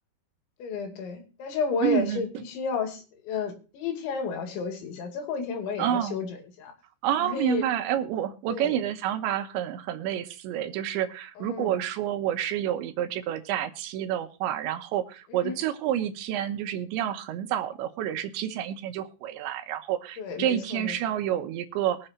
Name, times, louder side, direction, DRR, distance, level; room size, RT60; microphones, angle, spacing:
voice 1, 0.6-6.7 7.2-7.7 8.5-8.8 11.4-11.7 15.3-15.6 20.2-21.0, left 5 dB, 85° left, 3 dB, 4.9 m, -32 dB
voice 2, 1.8-2.4 5.8-6.2 7.0-22.1, right 11 dB, 85° right, 9 dB, 3.4 m, -29 dB
22.5 x 7.8 x 2.9 m, 0.35 s
omnidirectional pair, 5.1 m